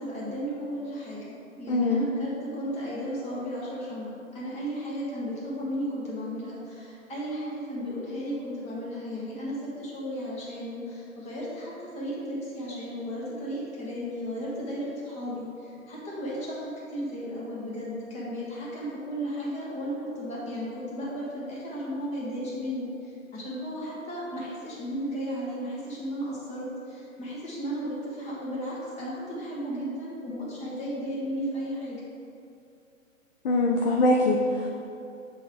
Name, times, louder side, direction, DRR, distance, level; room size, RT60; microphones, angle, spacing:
voice 1, 0.0-32.0, equal, 15° left, -7 dB, 1.3 m, -34 dB
voice 2, 1.7-2.0 33.4-34.7, left 2 dB, 45° left, 0 dB, 0.5 m, -23 dB
7.6 x 3.8 x 3.4 m, 2.6 s
figure-of-eight pair, 120°, 41 cm